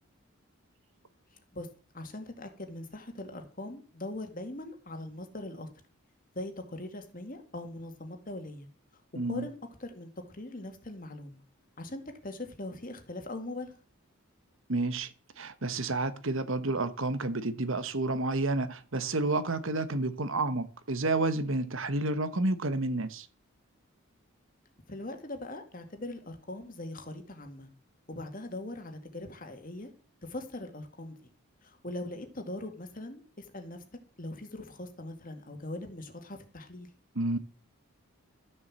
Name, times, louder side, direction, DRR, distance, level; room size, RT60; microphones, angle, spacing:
voice 1, 1.9-5.7 6.3-8.7 9.3-11.4 11.8-13.7 20.3-20.5 24.9-27.7 28.1-29.9 30.2-31.3 31.6-33.8 34.2-36.9, left 1 dB, 40° left, 2.2 m, -41 dB
voice 2, 9.2-9.5 14.7-23.3 37.1-37.4, right 2 dB, 60° right, 1.2 m, -30 dB
13.5 x 7.3 x 7.5 m
head